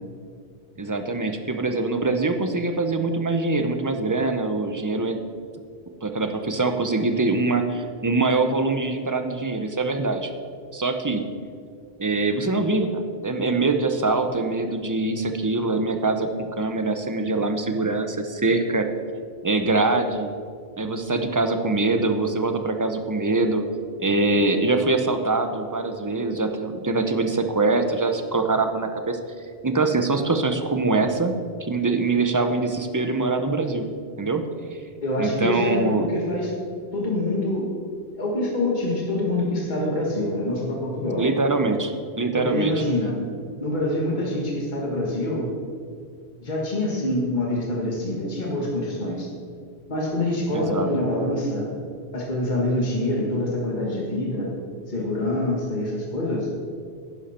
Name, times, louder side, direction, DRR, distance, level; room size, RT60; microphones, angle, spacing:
voice 1, 0.8-5.2 6.0-10.3 10.7-11.2 12.0-18.9 19.4-20.3 20.8-23.6 24.0-29.2 29.6-31.3 31.6-33.8 34.2-34.4 35.2-36.1 41.2-41.9 42.2-42.8 50.5-50.9, right 3 dB, 20° right, 6 dB, 0.7 m, -23 dB
voice 2, 35.0-36.5 36.9-37.7 38.2-41.2 42.4-43.2 43.6-45.4 46.4-49.3 49.9-51.7 52.1-54.5 54.9-56.5, left 1 dB, 45° left, -3 dB, 1.9 m, -25 dB
11.5 x 10.5 x 4.4 m, 2.2 s
omnidirectional pair, 1.1 m